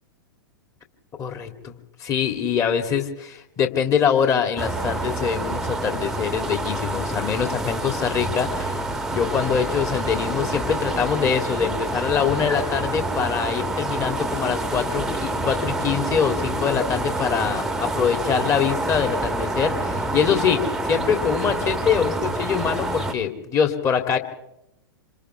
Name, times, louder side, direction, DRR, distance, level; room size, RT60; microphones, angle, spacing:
voice 1, 1.2-24.2, left 7 dB, 25° left, 5 dB, 2.9 m, -24 dB
sound 1, 4.6-23.1, right 2 dB, 5° right, 1.4 m, -27 dB
28.0 x 27.0 x 3.5 m, 0.83 s
figure-of-eight pair, 100°, 12 cm